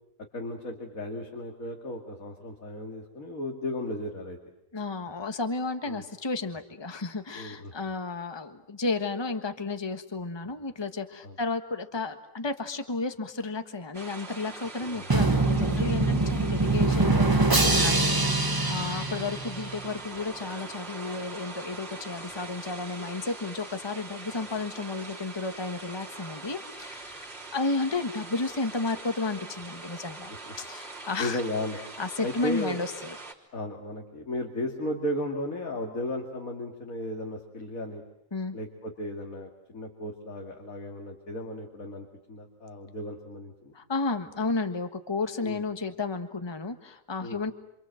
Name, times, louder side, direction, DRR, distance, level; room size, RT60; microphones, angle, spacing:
voice 1, 0.3-4.4 5.9-6.0 7.3-7.7 11.2-11.3 14.9-15.1 17.7-18.2 18.7-18.9 30.5-30.6 31.2-31.8 32.2-32.8 33.5-38.0 38.5-43.7 45.4-45.6 47.2-47.4, left 1 dB, 80° left, 1 dB, 2.9 m, -35 dB
voice 2, 4.7-31.4 32.0-33.2 38.3-38.6 43.7-47.5, left 3 dB, 20° left, 7 dB, 1.4 m, -32 dB
sound 1, 13.9-33.3, right 3 dB, 45° right, 3.9 m, -42 dB
Drum, 15.1-20.0, right 2 dB, 15° right, 1.1 m, -24 dB
28.0 x 26.5 x 7.8 m, 0.77 s
omnidirectional pair, 1.4 m